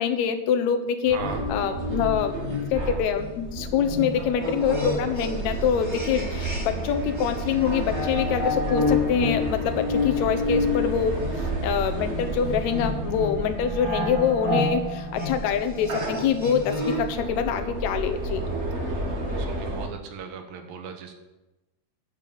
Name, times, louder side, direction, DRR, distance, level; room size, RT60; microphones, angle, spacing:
voice 1, 0.0-1.2 1.5-18.4, left 7 dB, 65° left, 8 dB, 2.0 m, -25 dB
sound 1, 1.1-6.9 7.2-17.1, left 3 dB, 10° right, 1.6 m, -30 dB
sound 2, 1.1-19.9, right 2 dB, 75° right, 0.6 m, -32 dB
voice 2, 1.1-1.4 18.9-21.1, right 7 dB, 90° right, 5 dB, 3.1 m, -38 dB
10.5 x 7.5 x 7.3 m, 1.0 s
omnidirectional pair, 3.9 m